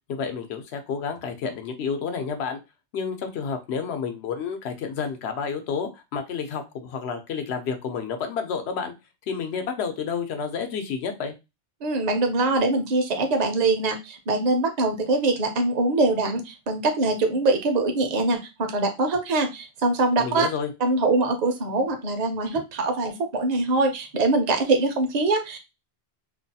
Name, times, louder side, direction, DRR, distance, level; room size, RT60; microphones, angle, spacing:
voice 1, 0.1-2.6 2.9-8.9 9.2-11.3 20.2-20.7, left 6 dB, 85° left, 6 dB, 0.9 m, -30 dB
voice 2, 11.8-20.5 20.8-25.6, right 2 dB, 50° right, 4 dB, 0.6 m, -23 dB
2.5 x 2.3 x 2.7 m, 0.24 s
omnidirectional pair, 1.1 m